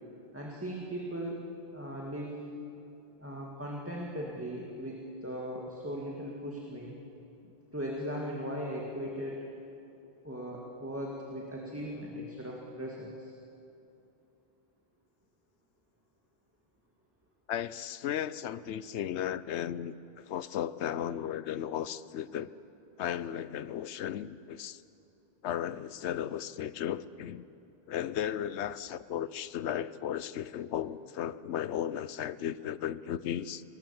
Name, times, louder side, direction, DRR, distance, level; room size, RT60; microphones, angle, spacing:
voice 1, 0.3-1.4 1.7-2.4 3.2-7.0 7.7-9.5 10.2-13.3, equal, 10° right, 2.1 m, -38 dB
voice 2, 17.5-19.9 20.3-22.5 23.0-24.8 25.4-27.4 27.9-33.6, left 10 dB, 85° left, 0.9 m, -35 dB
23.5 x 19.5 x 7.1 m
omnidirectional pair, 1.1 m